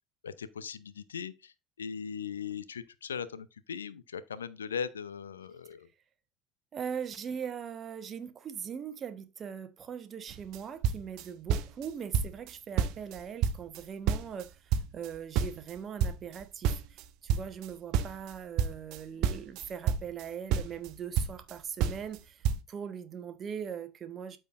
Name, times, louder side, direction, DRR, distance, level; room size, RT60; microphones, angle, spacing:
voice 1, 0.2-5.9, left 7 dB, 75° left, 0.6 m, -39 dB
voice 2, 6.7-24.4, right 7 dB, 35° right, 1.1 m, -40 dB
sound 1, 10.3-10.6 10.8-11.9 12.1-12.5 12.8-14.5 14.7-17.7 17.9-20.2 20.5-21.5 21.8-22.2 22.4-22.6, right 7 dB, 50° right, 0.6 m, -29 dB
13.0 x 4.5 x 2.5 m
figure-of-eight pair, 70°, 0 cm